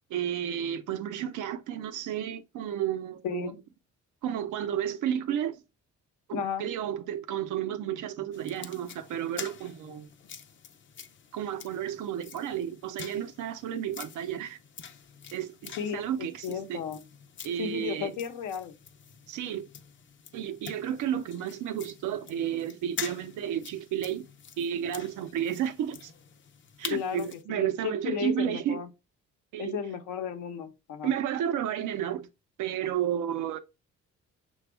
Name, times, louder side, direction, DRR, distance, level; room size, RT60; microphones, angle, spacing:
voice 1, 0.1-3.5 4.2-5.6 6.3-10.1 11.3-14.6 15.3-16.8 17.4-18.1 19.3-19.7 20.3-24.3 24.6-26.1 26.8-28.8 29.5-29.8 31.0-32.3 32.6-33.6, right 10 dB, 90° right, 0.6 m, -32 dB
voice 2, 3.2-3.6 6.3-6.7 15.8-17.0 17.6-18.7 26.9-28.9 29.6-31.1, left 7 dB, 85° left, 0.7 m, -34 dB
sound 1, 8.3-27.4, left 7 dB, 40° left, 0.5 m, -46 dB
5.9 x 2.3 x 3.3 m
cardioid pair, 90°, 30 cm